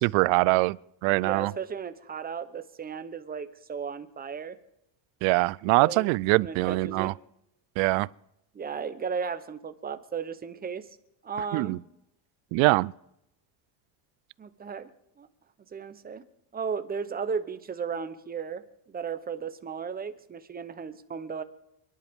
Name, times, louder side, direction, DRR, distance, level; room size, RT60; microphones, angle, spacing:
voice 1, 0.0-1.5 5.2-7.1 7.8-8.1 11.5-11.8 12.5-12.9, right 23 dB, 70° right, 0.6 m, -23 dB
voice 2, 1.1-4.6 5.8-6.1 6.4-7.1 8.5-10.9 11.2-11.8 14.4-14.9 15.2-15.3 15.7-16.2 16.5-18.6 18.9-21.4, right 6 dB, 20° right, 0.8 m, -35 dB
29.0 x 10.5 x 3.6 m
cardioid pair, 155°, 49 cm